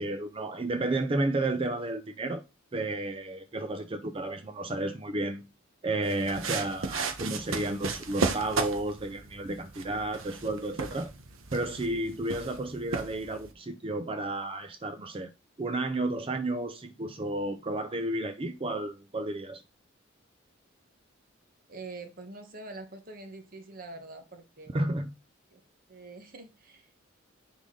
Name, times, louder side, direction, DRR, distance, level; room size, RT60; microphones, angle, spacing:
voice 1, 0.0-2.4 2.7-5.5 5.8-11.1 11.5-15.3 15.6-19.6 24.7-25.1, right 2 dB, 25° right, 0.5 m, -32 dB
sound 1, 6.0-13.5, right 4 dB, 80° right, 1.1 m, -35 dB
voice 2, 21.7-24.7 25.5-25.6 25.9-26.9, right 3 dB, 45° right, 1.3 m, -45 dB
10.0 x 3.8 x 3.8 m
head